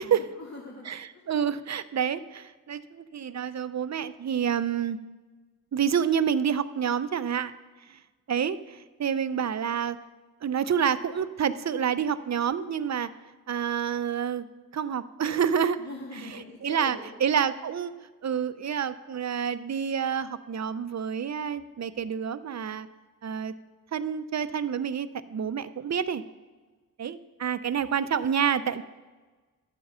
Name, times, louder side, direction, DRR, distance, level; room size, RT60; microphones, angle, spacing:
voice 1, 0.0-1.2 15.8-17.2, left 2 dB, 50° left, -3 dB, 1.9 m, -42 dB
voice 2, 1.3-5.0 5.7-7.5 7.9-8.0 8.3-10.0 10.4-13.1 13.5-14.5 14.7-15.8 16.6-17.0 17.2-17.9 18.2-22.9 23.2-23.5 23.9-26.2 27.0-28.8, right 8 dB, 50° right, 13 dB, 0.6 m, -28 dB
12.5 x 8.7 x 5.5 m, 1.3 s
wide cardioid pair, 70°, 35 cm